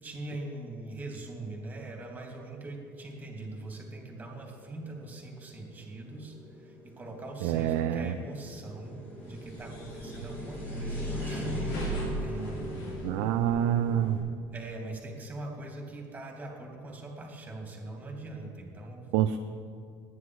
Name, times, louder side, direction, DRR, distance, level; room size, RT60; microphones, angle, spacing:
voice 1, 0.0-11.8 12.2-13.5 14.5-19.1, right 2 dB, 20° right, 1 dB, 2.9 m, -42 dB
sound 1, 1.8-14.2, right 1 dB, 20° left, 4.5 m, -41 dB
voice 2, 7.4-8.1 13.0-14.2 19.1-19.4, right 10 dB, 80° right, 7 dB, 0.6 m, -26 dB
sound 2, 9.2-14.2, equal, 80° left, 4.3 m, -38 dB
19.5 x 9.9 x 4.8 m, 2.2 s
cardioid pair, 135°, 9 cm